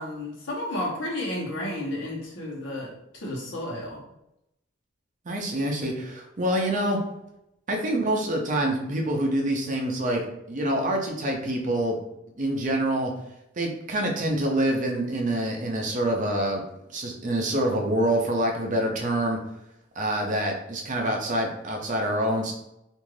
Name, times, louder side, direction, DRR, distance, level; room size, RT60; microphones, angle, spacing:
voice 1, 0.0-4.0, left 1 dB, 65° left, -3 dB, 1.0 m, -32 dB
voice 2, 5.3-7.0 7.7-10.2 10.5-12.0 12.4-13.1 13.6-16.6 16.9-19.4 20.0-22.5, right 1 dB, 40° right, 2 dB, 0.5 m, -26 dB
2.5 x 2.4 x 3.1 m, 0.83 s
head